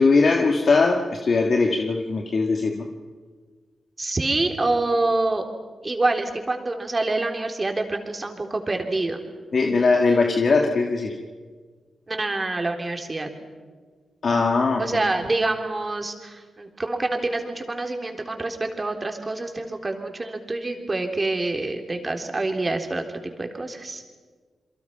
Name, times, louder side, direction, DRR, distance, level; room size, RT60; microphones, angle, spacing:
voice 1, 0.0-2.9 9.5-11.1 14.2-14.9, left 4 dB, 60° left, 2 dB, 1.9 m, -20 dB
voice 2, 4.0-5.5 5.8-9.2 12.1-13.3 14.8-24.0, right 2 dB, 35° right, 4 dB, 3.7 m, -26 dB
29.0 x 23.0 x 5.9 m, 1.5 s
supercardioid pair, 45°, 0 cm